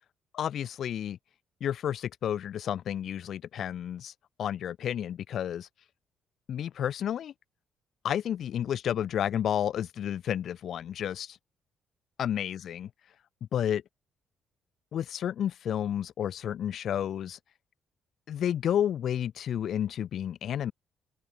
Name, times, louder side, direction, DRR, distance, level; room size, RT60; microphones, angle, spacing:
voice 1, 0.3-1.2 1.6-4.1 4.4-5.7 6.5-7.3 8.0-11.4 12.2-12.9 13.5-13.8 14.9-17.4 18.3-20.7, left 10 dB, 65° left, 0.8 m, -31 dB
open air
hypercardioid pair, 50°, 0 cm